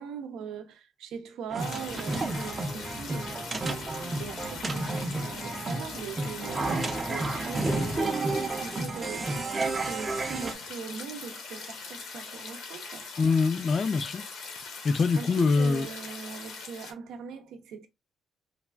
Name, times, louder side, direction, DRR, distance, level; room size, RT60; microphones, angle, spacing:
voice 1, 0.0-13.1 15.2-17.9, right 6 dB, 85° right, 0.5 m, -41 dB
sound 1, 1.5-10.5, right 2 dB, 30° right, 0.5 m, -31 dB
sound 2, 1.6-16.9, left 4 dB, 85° left, 0.9 m, -41 dB
voice 2, 13.2-14.2 14.8-15.9, left 4 dB, 45° left, 0.4 m, -24 dB
3.3 x 2.3 x 2.2 m
cardioid pair, 100°, 0 cm